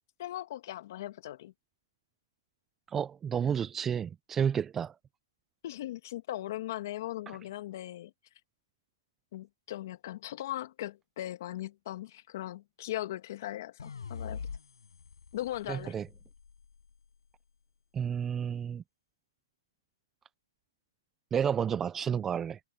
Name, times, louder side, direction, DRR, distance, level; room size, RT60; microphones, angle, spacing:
voice 1, 0.2-1.5 5.6-8.1 9.3-14.4 15.3-16.0, left 14 dB, 40° left, 2.0 m, -39 dB
voice 2, 2.9-4.9 15.7-16.1 17.9-18.8 21.3-22.6, right 8 dB, 10° right, 0.4 m, -31 dB
sound 1, 13.8-17.0, left 6 dB, 80° left, 7.5 m, -44 dB
hypercardioid pair, 160°, 2 cm